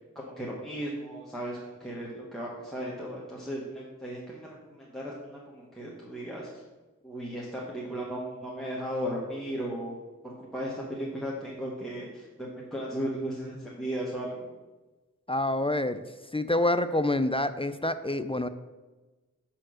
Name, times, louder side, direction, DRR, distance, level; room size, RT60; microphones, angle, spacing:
voice 1, 0.1-6.6 7.0-9.9 10.2-14.5, equal, ahead, -5 dB, 1.3 m, -36 dB
voice 2, 15.3-16.0 16.3-18.5, left 1 dB, 20° left, 11 dB, 0.4 m, -27 dB
6.5 x 4.5 x 6.2 m, 1.2 s
wide cardioid pair, 45°, 30 cm